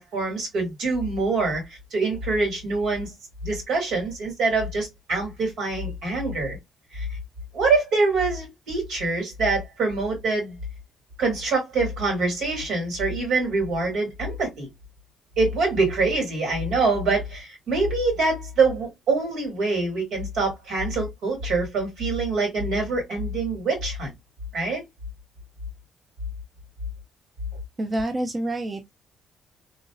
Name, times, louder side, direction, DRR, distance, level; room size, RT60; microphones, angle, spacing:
voice 1, 0.0-1.6 1.9-3.1 3.4-6.6 6.9-7.1 7.5-10.6 11.2-14.7 15.4-24.1 24.5-24.8, right 3 dB, 75° right, 2.2 m, -25 dB
voice 2, 27.8-28.9, right 1 dB, 30° right, 0.5 m, -27 dB
3.0 x 2.6 x 2.3 m
cardioid pair, 90°, 0 cm